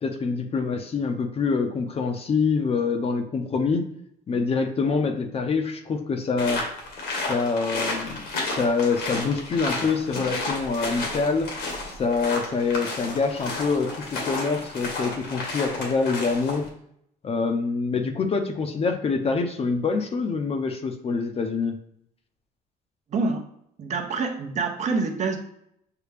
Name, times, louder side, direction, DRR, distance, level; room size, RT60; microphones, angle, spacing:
voice 1, 0.0-3.9 4.3-6.6 7.2-11.5 12.0-16.6 17.2-21.8, left 4 dB, 35° left, 6 dB, 0.7 m, -25 dB
sound 1, 6.4-16.7, left 2 dB, 80° left, 1.5 m, -32 dB
voice 2, 23.1-23.5 23.8-25.4, right 4 dB, 45° right, 4 dB, 0.8 m, -26 dB
6.6 x 2.2 x 3.4 m, 0.72 s
cardioid pair, 110°, 17 cm